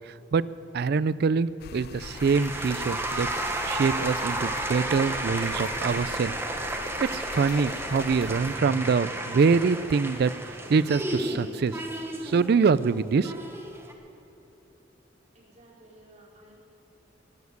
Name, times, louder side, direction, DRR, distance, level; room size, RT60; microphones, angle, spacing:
voice 1, 0.1-0.5 0.7-3.3 3.6-6.3 7.0-10.3 10.7-11.8 12.2-13.3, right 5 dB, 60° right, 17 dB, 0.4 m, -24 dB
sound 1, 1.6-8.6, left 6 dB, 55° left, 0.3 m, -43 dB
sound 2, 2.0-13.9, right 1 dB, 15° right, 1.2 m, -32 dB
voice 2, 15.3-16.5, right 1 dB, 40° right, -6 dB, 4.5 m, -54 dB
21.0 x 7.2 x 8.0 m, 3.0 s
head